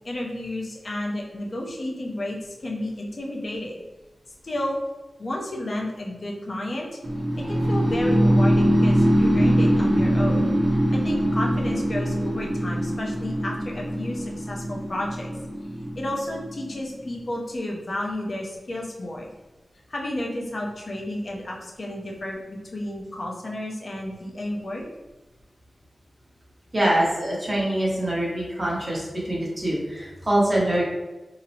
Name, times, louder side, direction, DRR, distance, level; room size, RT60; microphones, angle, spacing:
voice 1, 0.0-3.8 4.4-4.8 5.2-7.0 7.4-15.3 16.0-19.3 19.9-24.8, left 1 dB, 55° left, -1 dB, 0.6 m, -32 dB
sound 1, 7.0-17.0, equal, 45° right, 0.4 m, -22 dB
voice 2, 26.7-30.8, right 1 dB, 30° right, -5 dB, 1.0 m, -24 dB
2.8 x 2.0 x 2.7 m, 1.1 s
wide cardioid pair, 75°, 0 cm